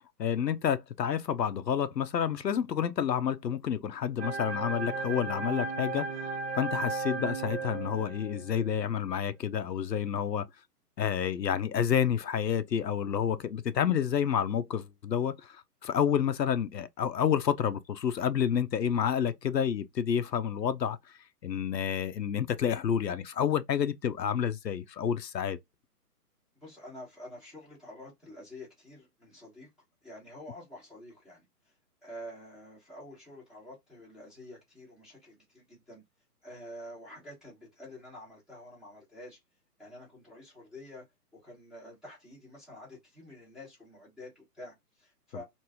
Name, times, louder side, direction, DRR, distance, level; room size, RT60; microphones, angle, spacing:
voice 1, 0.2-6.3 6.5-10.4 11.0-21.0 21.4-25.6, left 8 dB, 90° left, 0.6 m, -29 dB
sound 1, 4.2-8.7, right 3 dB, 40° right, 0.6 m, -35 dB
voice 2, 26.6-29.7 30.0-31.4 32.0-36.0 36.4-39.4 39.8-41.0 41.4-45.4, left 1 dB, ahead, 0.9 m, -48 dB
3.0 x 2.6 x 3.5 m
figure-of-eight pair, 135°, 48 cm